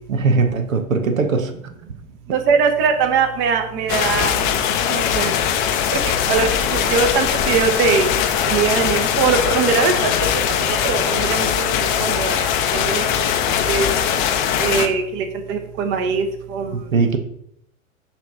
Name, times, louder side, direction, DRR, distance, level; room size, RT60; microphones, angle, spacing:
voice 1, 0.1-1.5 16.7-17.2, right 4 dB, 70° right, 6 dB, 0.9 m, -19 dB
voice 2, 2.3-4.6 4.9-5.3 5.9-6.0 6.3-8.1 8.5-10.1 10.6-13.0 13.7-13.9 14.6-16.8, right 5 dB, 30° right, 6 dB, 0.9 m, -21 dB
sound 1, 3.9-14.9, left 8 dB, 35° left, 0.7 m, -20 dB
7.1 x 3.1 x 5.5 m, 0.73 s
figure-of-eight pair, 95°, 41 cm